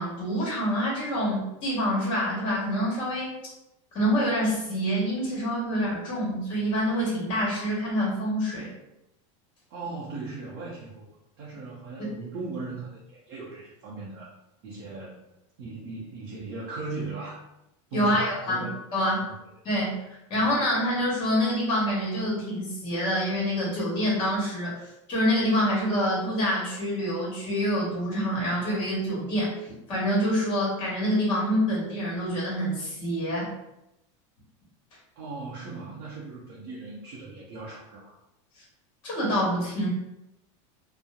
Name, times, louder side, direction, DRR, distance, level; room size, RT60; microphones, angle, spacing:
voice 1, 0.0-3.3 3.9-8.7 17.9-19.3 19.6-33.5 38.6-38.7 39.0-39.9, equal, 30° left, -5 dB, 1.1 m, -26 dB
voice 2, 9.7-11.1 11.4-14.3 14.6-15.2 15.6-17.4 17.9-18.7 19.2-19.4 20.3-20.4 35.2-38.2, right 3 dB, 55° right, -6 dB, 0.6 m, -38 dB
2.8 x 2.0 x 2.3 m, 0.88 s
supercardioid pair, 170°, 16 cm